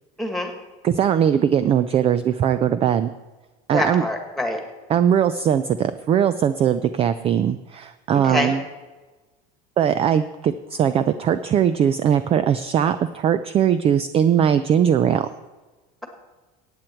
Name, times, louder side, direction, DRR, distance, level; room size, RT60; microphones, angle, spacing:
voice 1, 0.2-0.5 3.7-4.6 8.1-8.5, left 1 dB, ahead, 4 dB, 1.9 m, -25 dB
voice 2, 0.8-3.1 3.7-4.0 4.9-8.6 9.8-15.3, right 9 dB, 30° right, 13 dB, 0.4 m, -20 dB
15.5 x 8.9 x 4.5 m, 1.2 s
cardioid pair, 135°, 21 cm